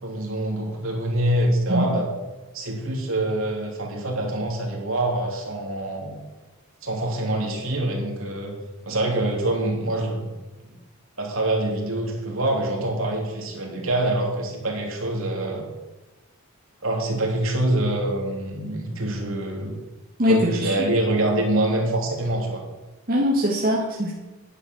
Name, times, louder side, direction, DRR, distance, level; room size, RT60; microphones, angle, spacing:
voice 1, 0.0-2.1 2.5-6.2 6.8-8.5 8.8-10.3 10.6-10.7 11.2-15.7 16.8-19.8 20.3-22.6, right 1 dB, 65° right, 0 dB, 3.1 m, -25 dB
voice 2, 20.2-20.9 23.1-24.1, left 1 dB, 40° right, -3 dB, 1.7 m, -22 dB
11.0 x 10.0 x 6.2 m, 1.2 s
head